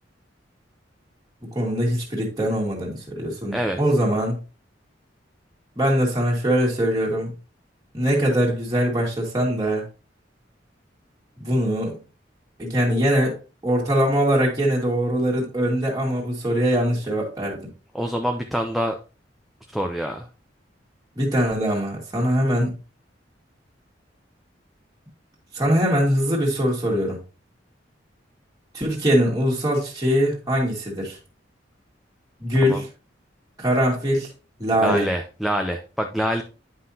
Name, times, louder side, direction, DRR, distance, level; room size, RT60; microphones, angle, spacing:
voice 1, 1.5-4.4 5.8-7.3 7.9-9.8 11.4-12.0 12.6-13.4 13.6-17.7 21.2-22.7 25.5-27.2 28.7-31.2 32.4-32.8 33.6-34.3 34.6-35.0, equal, 20° right, -4 dB, 2.0 m, -22 dB
voice 2, 17.9-19.0 19.7-20.3 32.6-32.8 34.8-36.4, equal, ahead, 3 dB, 0.5 m, -25 dB
9.7 x 5.6 x 2.8 m, 0.32 s
head